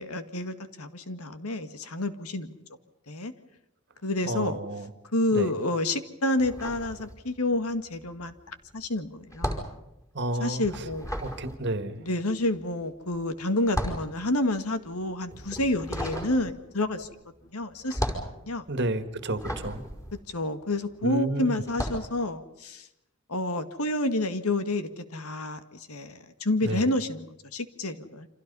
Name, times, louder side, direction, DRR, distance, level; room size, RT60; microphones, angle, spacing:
voice 1, 0.0-2.5 3.1-3.3 4.0-4.6 5.1-9.6 10.4-11.1 12.0-17.1 17.5-18.0 18.4-18.6 20.3-22.9 23.3-28.3, left 2 dB, 80° left, 10 dB, 2.0 m, -29 dB
voice 2, 4.2-4.9 5.3-5.5 10.1-10.6 11.2-12.0 18.7-19.8 21.0-21.6 26.6-26.9, right 1 dB, 50° right, 10 dB, 1.8 m, -30 dB
sound 1, 6.4-7.6 7.9-21.1 21.6-22.1, equal, 15° left, 5.2 m, -35 dB
29.5 x 26.5 x 5.6 m, 0.87 s
head